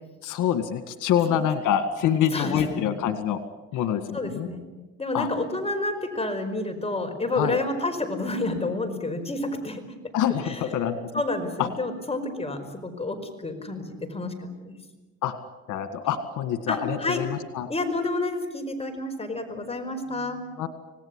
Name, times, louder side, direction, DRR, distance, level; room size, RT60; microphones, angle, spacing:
voice 1, 0.2-3.4 3.7-4.5 5.1-5.3 7.4-7.6 10.1-11.0 11.6-11.7 15.2-15.3 15.7-17.7 20.6-20.7, left 9 dB, 90° left, 9 dB, 1.9 m, -26 dB
voice 2, 2.3-2.9 4.1-4.6 5.0-9.8 10.4-10.7 11.1-14.7 16.7-17.2 17.7-20.4, left 2 dB, 20° left, 6 dB, 5.0 m, -29 dB
26.5 x 18.5 x 9.8 m, 1.2 s
cardioid pair, 90°, 30 cm